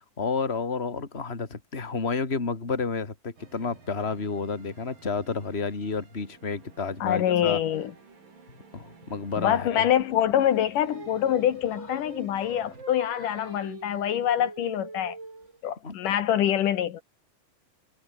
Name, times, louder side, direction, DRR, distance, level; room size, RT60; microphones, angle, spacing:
voice 1, 0.0-7.6 8.7-9.9 15.8-16.0, left 4 dB, 20° left, 2.9 m, -30 dB
sound 1, 3.4-12.8, right 4 dB, 80° right, 7.9 m, -54 dB
voice 2, 7.0-7.9 9.4-15.2 15.6-17.0, left 10 dB, 75° left, 3.0 m, -25 dB
Singing, 10.4-15.6, right 3 dB, 20° right, 3.3 m, -43 dB
omnidirectional pair, 3.8 m